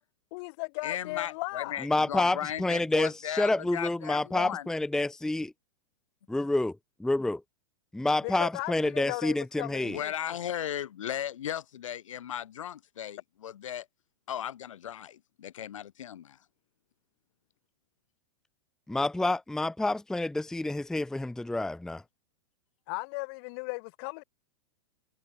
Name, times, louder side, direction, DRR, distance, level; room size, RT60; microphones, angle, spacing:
voice 1, 0.3-1.8 8.2-10.1 22.9-24.2, left 30 dB, 50° left, 3.1 m, -36 dB
voice 2, 0.8-4.7 9.8-13.9 14.3-16.4, left 10 dB, 80° left, 1.5 m, -36 dB
voice 3, 1.8-5.5 6.3-6.7 7.0-7.4 7.9-10.0 18.9-22.0, left 2 dB, 5° left, 0.7 m, -28 dB
hypercardioid pair, 115°, 16 cm